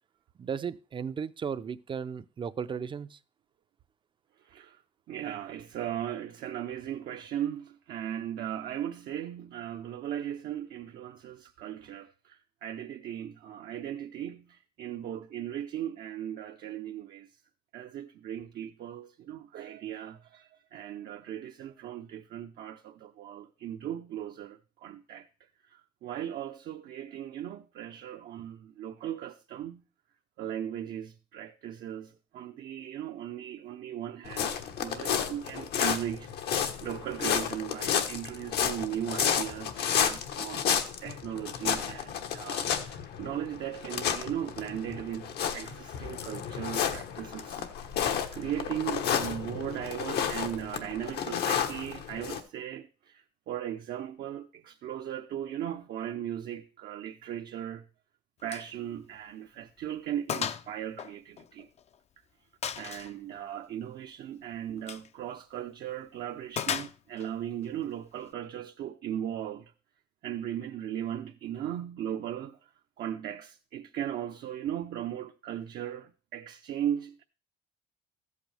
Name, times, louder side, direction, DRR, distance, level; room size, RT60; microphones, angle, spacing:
voice 1, 0.4-3.2, right 7 dB, 30° right, 0.5 m, -35 dB
voice 2, 4.5-4.8 5.1-17.3 17.7-25.3 26.0-29.8 30.4-36.3 36.8-47.7 48.3-57.8 58.4-61.7 62.8-69.7 70.2-72.6 73.0-77.2, right 10 dB, 65° right, 0.7 m, -37 dB
sound 1, 34.2-52.4, left 8 dB, 75° left, 1.2 m, -31 dB
Gunshot gunfire, 58.5-58.7 59.0-59.2 59.6-59.7 60.3-60.7 61.0-62.0 62.6-63.1 64.8-65.1 66.6-67.3, left 8 dB, 40° left, 0.5 m, -34 dB
13.5 x 8.4 x 3.4 m
cardioid pair, 110°, 17 cm